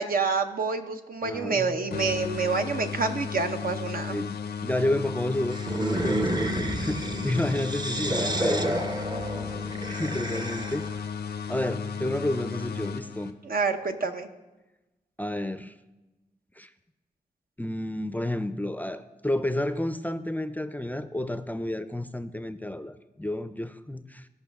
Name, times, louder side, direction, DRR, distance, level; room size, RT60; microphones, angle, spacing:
voice 1, 0.0-4.1 13.5-14.3, right 4 dB, 65° right, 6 dB, 0.9 m, -27 dB
voice 2, 1.2-1.8 4.1-8.8 9.9-10.9 11.5-13.3 15.2-15.8 16.6-16.7 17.6-24.3, left 1 dB, 10° left, 12 dB, 0.5 m, -31 dB
sound 1, 1.9-13.6, left 6 dB, 90° left, 0.6 m, -35 dB
sound 2, 5.5-11.0, right 1 dB, 25° right, 0.8 m, -30 dB
15.5 x 5.4 x 3.5 m, 1.1 s
cardioid pair, 50°, 16 cm